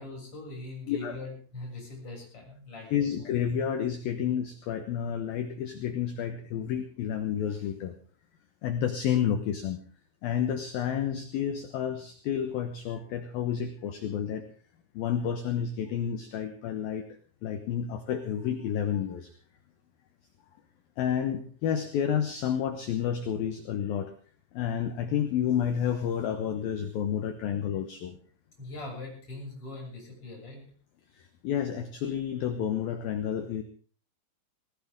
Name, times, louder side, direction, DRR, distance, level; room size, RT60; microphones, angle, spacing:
voice 1, 0.0-3.3 28.6-30.6, left 2 dB, 25° left, -2 dB, 8.0 m, -42 dB
voice 2, 0.9-1.2 2.9-7.9 8.6-9.8 10.2-14.4 14.9-17.0 17.4-19.3 21.0-24.1 24.5-28.2 31.2-33.6, left 9 dB, 70° left, 8 dB, 2.3 m, -30 dB
20.0 x 18.0 x 3.7 m, 0.41 s
omnidirectional pair, 5.7 m